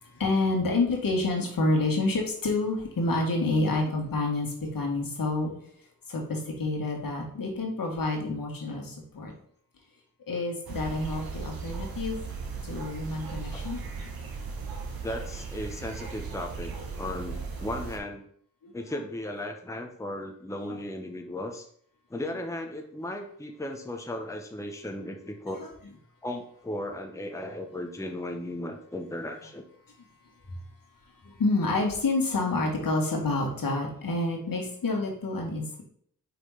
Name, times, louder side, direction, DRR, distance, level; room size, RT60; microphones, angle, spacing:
voice 1, 0.0-5.5 6.1-9.3 10.3-12.2 12.6-13.8 18.6-18.9 20.7-20.8 30.5-30.6 31.2-35.8, left 2 dB, 70° left, 0 dB, 1.8 m, -28 dB
sound 1, 10.7-18.0, right 5 dB, 90° right, 1.1 m, -37 dB
voice 2, 15.0-18.2 18.7-21.7 22.1-25.6 26.2-29.6, left 1 dB, 10° left, 4 dB, 0.9 m, -36 dB
5.3 x 4.0 x 4.9 m, 0.63 s
cardioid pair, 70°, 35 cm